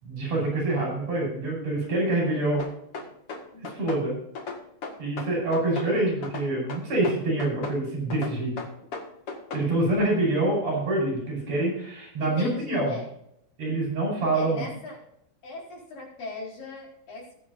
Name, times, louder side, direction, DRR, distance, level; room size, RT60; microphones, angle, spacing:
voice 1, 0.0-2.7 3.5-4.1 5.0-8.5 9.5-13.0 13.6-14.7, right 2 dB, 45° right, -1 dB, 6.7 m, -26 dB
sound 1, 2.6-4.0 4.4-5.9 6.2-7.8 8.1-9.7, left 4 dB, 45° left, 2.2 m, -36 dB
voice 2, 12.2-13.1 14.3-15.0 15.4-17.4, left 3 dB, 60° left, -5 dB, 6.0 m, -38 dB
21.5 x 8.4 x 2.7 m, 0.76 s
omnidirectional pair, 4.4 m